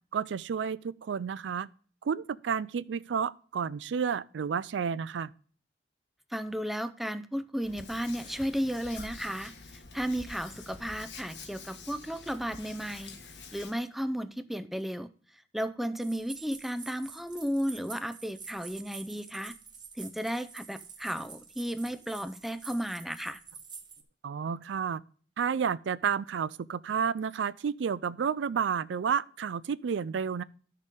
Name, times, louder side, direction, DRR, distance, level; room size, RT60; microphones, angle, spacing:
voice 1, 0.1-1.7 2.0-5.3 24.2-25.0 25.4-30.4, right 7 dB, 90° right, 0.4 m, -31 dB
voice 2, 6.3-13.2 13.5-15.1 15.5-19.6 20.0-23.4, equal, ahead, 0.5 m, -34 dB
Hands, 7.6-13.7, left 4 dB, 70° left, 1.4 m, -47 dB
sound 1, 16.0-24.0, right 5 dB, 25° right, 1.0 m, -48 dB
12.5 x 6.6 x 3.6 m
head